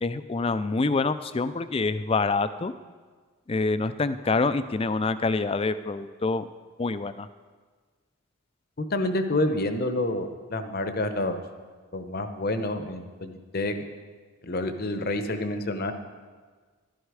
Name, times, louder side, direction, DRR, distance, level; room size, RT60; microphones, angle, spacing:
voice 1, 0.0-2.7 3.5-6.5 6.8-7.3, left 3 dB, 25° left, 13 dB, 0.3 m, -26 dB
voice 2, 8.8-11.4 11.9-13.8 14.4-15.9, left 2 dB, 45° left, 8 dB, 0.8 m, -28 dB
12.0 x 11.5 x 4.8 m, 1.5 s
head